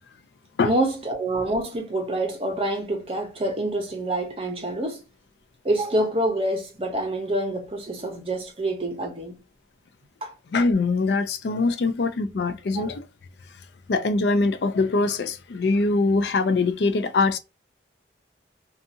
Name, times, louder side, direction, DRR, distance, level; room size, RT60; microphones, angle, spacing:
voice 1, 0.6-5.0 5.6-9.4 10.2-10.3 12.8-12.9, right 1 dB, 30° right, 0.7 m, -26 dB
voice 2, 10.5-13.0 13.9-17.4, left 3 dB, 65° left, 0.4 m, -23 dB
2.7 x 2.4 x 2.6 m
head